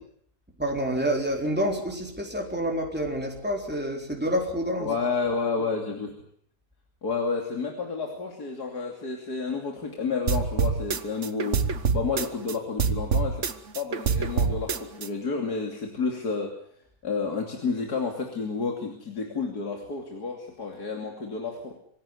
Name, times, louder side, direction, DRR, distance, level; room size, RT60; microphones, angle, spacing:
voice 1, 0.6-4.9, equal, 5° right, 1 dB, 4.1 m, -28 dB
voice 2, 4.8-6.1 7.0-13.5 13.8-16.5 17.0-21.8, left 4 dB, 80° left, 2 dB, 3.5 m, -30 dB
sound 1, 10.3-12.5 12.8-15.1, right 5 dB, 50° right, 1.5 m, -26 dB
25.0 x 16.5 x 9.8 m, 0.65 s
omnidirectional pair, 1.7 m